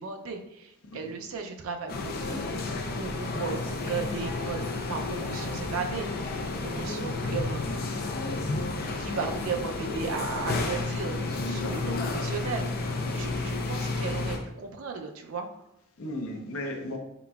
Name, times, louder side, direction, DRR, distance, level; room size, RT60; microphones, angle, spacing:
voice 1, 0.0-8.0 9.0-15.7, right 5 dB, 80° right, 4 dB, 0.5 m, -36 dB
sound 1, 1.9-14.4, left 3 dB, 45° left, 0.5 m, -31 dB
voice 2, 11.1-12.1 13.0-13.1 16.0-17.0, left 1 dB, 80° left, 3 dB, 0.7 m, -36 dB
4.2 x 3.9 x 2.3 m, 0.84 s
head